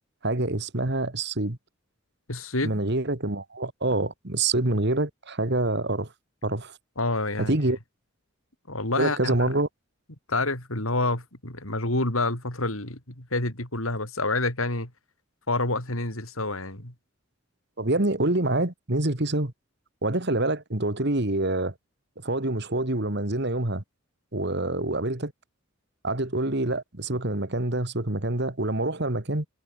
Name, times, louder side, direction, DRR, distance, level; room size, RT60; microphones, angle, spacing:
voice 1, 0.2-1.6 2.6-6.1 6.4-6.8 7.4-7.8 9.0-9.7 17.8-19.5 20.0-21.7 22.2-23.8 24.3-25.3 26.0-29.5, right 2 dB, 55° right, 2.2 m, -26 dB
voice 2, 2.3-2.8 7.0-7.6 8.7-9.4 10.3-14.9 15.5-16.9, left 2 dB, 85° left, 6.1 m, -28 dB
head